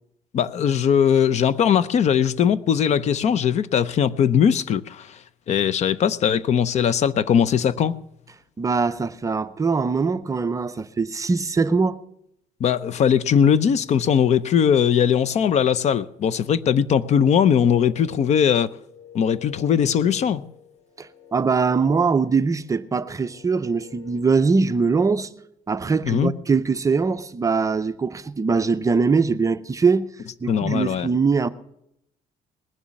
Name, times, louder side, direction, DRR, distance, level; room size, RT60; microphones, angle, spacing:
voice 1, 0.3-5.1 5.5-8.0 12.6-18.7 19.1-20.4 26.1-26.3 30.5-31.1, left 8 dB, 50° left, 0.6 m, -20 dB
voice 2, 8.6-12.0 21.0-25.3 25.7-30.1 30.4-31.5, right 4 dB, 20° right, 0.5 m, -22 dB
sound 1, 16.8-24.7, left 10 dB, 30° left, 2.4 m, -46 dB
20.0 x 7.1 x 6.4 m
cardioid pair, 130°, 15 cm